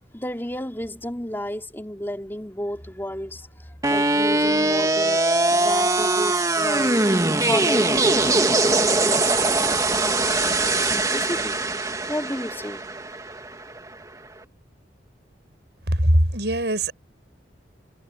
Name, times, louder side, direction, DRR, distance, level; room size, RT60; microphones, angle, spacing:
voice 1, 0.1-7.0 7.4-11.5 11.9-12.8, left 1 dB, 10° left, 3.3 m, -32 dB
sound 1, 3.8-13.9, right 2 dB, 20° right, 2.2 m, -21 dB
voice 2, 15.9-16.9, right 1 dB, 70° right, 6.0 m, -20 dB
head